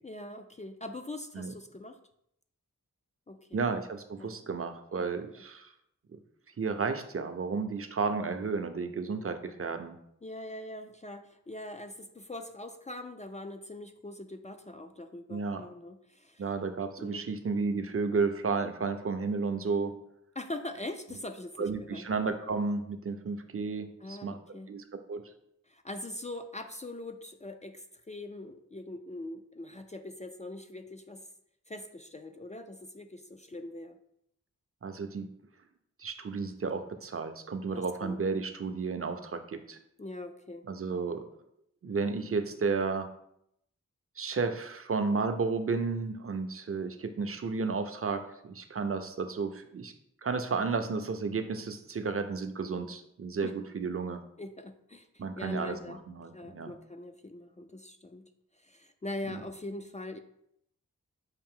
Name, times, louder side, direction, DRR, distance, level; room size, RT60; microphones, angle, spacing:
voice 1, 0.0-2.0 3.3-3.6 4.2-4.4 5.0-5.4 10.2-16.5 17.0-17.3 20.4-22.1 24.0-24.7 25.7-31.3 31.7-34.0 37.7-38.2 40.0-40.6 53.4-53.5 54.4-56.0 56.3-58.3 58.6-60.2, left 1 dB, 25° left, 6 dB, 0.3 m, -42 dB
voice 2, 3.5-5.7 6.6-9.9 15.3-15.6 16.4-19.9 21.6-24.4 24.7-25.2 34.8-35.3 36.0-39.8 40.7-41.2 41.8-43.1 44.2-49.9 50.2-54.2 55.2-55.8 56.1-56.7 59.3-59.4, right 4 dB, 45° right, 8 dB, 0.5 m, -32 dB
5.6 x 2.6 x 3.6 m, 0.75 s
cardioid pair, 40°, 33 cm